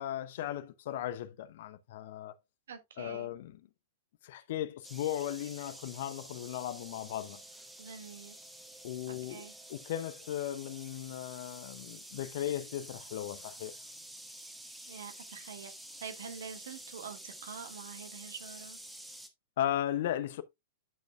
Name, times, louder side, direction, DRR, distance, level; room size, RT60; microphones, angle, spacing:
voice 1, 0.0-2.4 3.0-3.5 4.2-7.4 8.8-9.4 9.7-13.8 19.6-20.4, left 12 dB, 50° left, 0.8 m, -36 dB
voice 2, 2.7-3.3 7.8-8.4 9.1-9.5 14.9-15.7 16.0-18.8, right 6 dB, 60° right, 1.7 m, -46 dB
sound 1, 4.8-19.3, right 1 dB, 5° right, 1.6 m, -49 dB
11.0 x 6.3 x 2.3 m
figure-of-eight pair, 100°, 0 cm